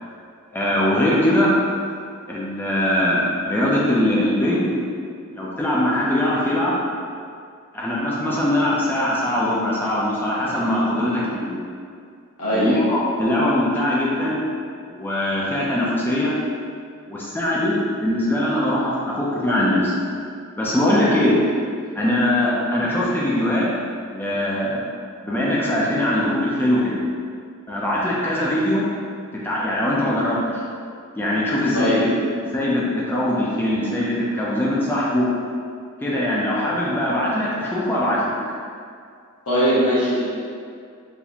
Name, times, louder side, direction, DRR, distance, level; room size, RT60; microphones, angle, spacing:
voice 1, 0.5-1.5 2.3-4.7 5.3-6.8 7.7-11.6 12.5-14.4 14.9-16.3 17.1-19.9 20.6-21.4 22.0-23.7 24.1-24.8 25.2-27.0 27.7-28.9 29.3-30.7 31.2-32.1 32.4-35.3 36.0-38.3, left 1 dB, 10° left, -6 dB, 0.4 m, -21 dB
voice 2, 12.4-12.8 31.7-32.0 39.5-40.2, equal, 90° left, -11 dB, 1.5 m, -20 dB
4.0 x 2.5 x 2.8 m, 2.3 s
head